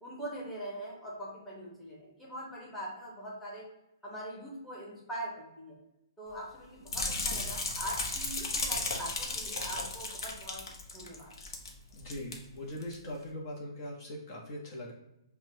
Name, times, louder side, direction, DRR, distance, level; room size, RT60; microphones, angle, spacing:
voice 1, 0.0-3.6 4.0-5.8 6.2-10.6 10.9-11.3, right 1 dB, 5° left, -6 dB, 1.1 m, -42 dB
sound 1, 6.9-11.7 12.0-12.3 12.8-12.9, left 3 dB, 70° left, 0.8 m, -35 dB
voice 2, 11.9-14.9, left 1 dB, 40° left, -2 dB, 0.9 m, -41 dB
5.7 x 2.3 x 2.7 m, 0.88 s
hypercardioid pair, 135°, 2 cm